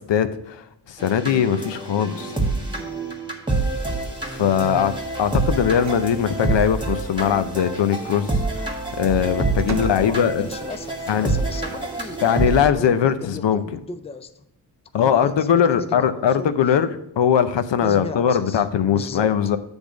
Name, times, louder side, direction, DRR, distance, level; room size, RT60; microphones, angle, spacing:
voice 1, 0.0-2.3 4.3-4.9 5.2-10.5 11.1-11.3 12.2-13.6 14.9-16.9 17.2-19.6, left 8 dB, 80° left, 11 dB, 0.7 m, -20 dB
sound 1, 1.0-12.7, right 2 dB, 10° right, 1.4 m, -27 dB
voice 2, 4.6-5.0 10.0-14.3 15.0-16.5 17.8-19.3, left 3 dB, 15° left, 10 dB, 0.4 m, -35 dB
sound 2, 5.8-6.0 6.4-6.9 8.3-10.7 11.4-12.2, right 6 dB, 40° right, 0.5 m, -38 dB
8.1 x 3.5 x 6.1 m, 0.84 s
wide cardioid pair, 105°, 42 cm